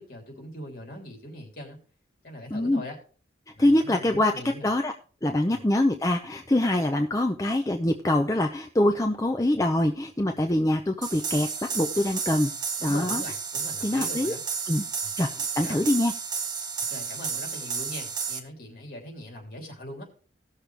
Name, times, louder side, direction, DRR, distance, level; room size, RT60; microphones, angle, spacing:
voice 1, 0.0-1.8 2.2-3.0 3.5-4.7 5.5-5.6 12.8-14.4 15.0-15.2 15.6-15.8 16.9-20.1, left 1 dB, 50° left, 1 dB, 3.2 m, -41 dB
voice 2, 2.5-2.8 3.6-4.3 4.6-4.9 5.2-12.5 12.8-13.2 13.8-14.3 14.7-14.8 15.2-16.1, left 1 dB, 20° left, 4 dB, 0.6 m, -24 dB
sound 1, 11.0-18.4, right 6 dB, 25° right, 1.1 m, -32 dB
17.5 x 6.6 x 3.3 m, 0.39 s
head